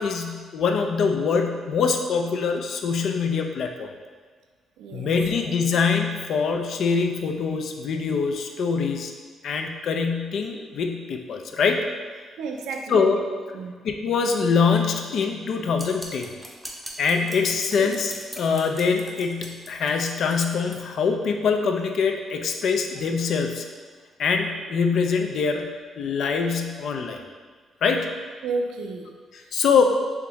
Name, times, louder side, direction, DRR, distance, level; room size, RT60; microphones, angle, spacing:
voice 1, 0.0-3.9 4.9-9.1 9.4-11.9 12.9-13.2 13.8-16.3 17.0-23.7 24.2-25.7 26.0-27.2 27.8-28.1 29.5-29.8, left 5 dB, 65° left, 4 dB, 0.4 m, -24 dB
voice 2, 4.8-5.1 12.4-13.0 13.5-13.8 17.8-17.9 28.4-29.1 29.8-29.9, right 4 dB, 85° right, 2 dB, 0.4 m, -31 dB
sound 1, 15.8-20.8, right 1 dB, 10° right, 0.6 m, -41 dB
3.5 x 2.9 x 3.5 m, 1.6 s
cardioid pair, 90°, 0 cm